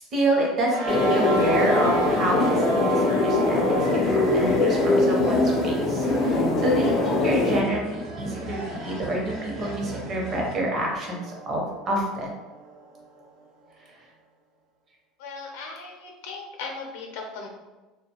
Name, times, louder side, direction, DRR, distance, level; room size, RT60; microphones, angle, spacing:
voice 1, 0.1-12.3, right 1 dB, 30° right, -2 dB, 0.7 m, -28 dB
sound 1, 0.6-13.4, right 3 dB, 85° right, 0.5 m, -33 dB
sound 2, 0.9-7.6, left 2 dB, 35° left, 0.4 m, -22 dB
sound 3, 3.8-10.6, right 1 dB, 55° right, 0.9 m, -37 dB
voice 2, 15.2-17.5, left 4 dB, 85° left, 2 dB, 0.6 m, -37 dB
2.4 x 2.2 x 2.9 m, 1.2 s
cardioid pair, 150°, 0 cm